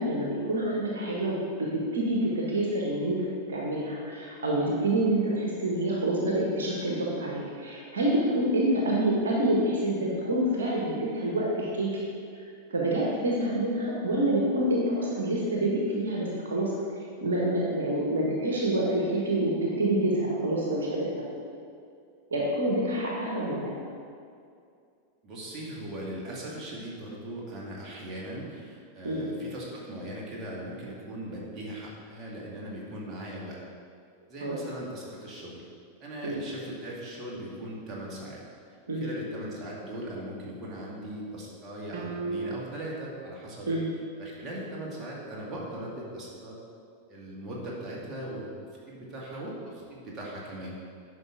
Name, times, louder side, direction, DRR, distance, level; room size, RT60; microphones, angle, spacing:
voice 1, 0.0-3.2 3.5-11.9 12.7-16.7 17.2-21.3 22.3-23.7 29.0-29.2 34.4-34.6 36.2-36.4 38.9-39.1 43.7-43.9, right 1 dB, 65° right, -3 dB, 1.4 m, -27 dB
voice 2, 25.2-33.6 34.3-35.6 36.0-38.4 38.9-43.7 44.2-46.6 47.1-48.5 48.9-50.7, right 1 dB, 25° right, -5 dB, 2.1 m, -39 dB
sound 1, 41.9-43.0, right 4 dB, 45° right, 0.8 m, -35 dB
10.5 x 5.7 x 3.9 m, 2.4 s
figure-of-eight pair, 90°, 0 cm